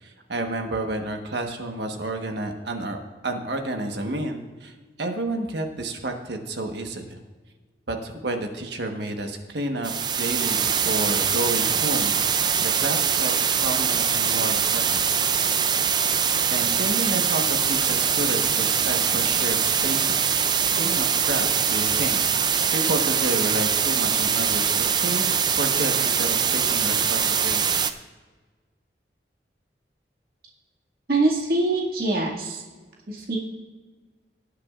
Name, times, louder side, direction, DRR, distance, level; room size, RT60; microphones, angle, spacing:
voice 1, 0.0-4.7 5.0-7.2 7.9-9.9 10.2-15.1 16.5-20.3 20.6-27.6, right 2 dB, 80° right, 4 dB, 1.3 m, -30 dB
sound 1, 9.8-27.9, right 7 dB, 25° right, 0.4 m, -23 dB
voice 2, 31.1-32.6 33.1-33.4, right 2 dB, 55° right, -3 dB, 2.1 m, -24 dB
18.5 x 8.4 x 2.5 m, 1.4 s
head